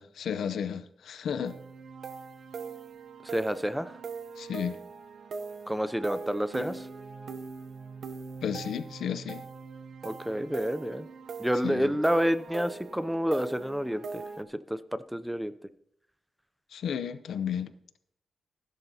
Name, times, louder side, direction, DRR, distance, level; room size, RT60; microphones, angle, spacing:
voice 1, 0.0-1.5 4.4-4.8 8.4-9.4 11.6-12.0 16.7-17.7, left 8 dB, 80° left, 12 dB, 0.6 m, -33 dB
sound 1, 1.5-14.4, right 5 dB, 65° right, 0.7 m, -41 dB
voice 2, 3.2-4.0 5.7-6.9 10.0-11.1 11.4-15.5, equal, 5° right, 14 dB, 0.5 m, -29 dB
15.5 x 11.0 x 2.8 m, 0.72 s
cardioid pair, 115°, 0 cm